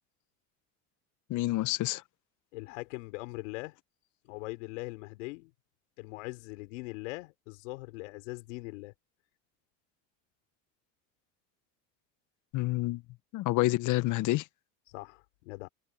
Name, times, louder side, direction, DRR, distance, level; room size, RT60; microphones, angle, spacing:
voice 1, 1.3-2.0 12.5-13.0 13.3-14.4, left 18 dB, 55° left, 0.9 m, -28 dB
voice 2, 2.5-3.8 4.3-5.5 6.0-8.9 14.9-15.7, left 24 dB, 80° left, 5.5 m, -41 dB
supercardioid pair, 95°, 37 cm